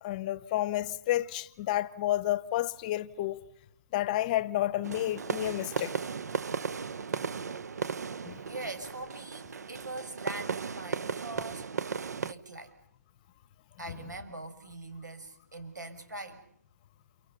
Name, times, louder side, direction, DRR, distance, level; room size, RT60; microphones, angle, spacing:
voice 1, 0.0-3.4 3.9-5.9 8.2-8.4 13.8-14.2, left 14 dB, 25° left, 1.0 m, -31 dB
sound 1, 4.8-12.3, right 5 dB, 65° right, 1.1 m, -36 dB
voice 2, 8.5-11.9 12.2-12.7 13.8-16.4, right 2 dB, 90° right, 6.4 m, -42 dB
29.5 x 29.0 x 5.6 m
hypercardioid pair, 155°, 9 cm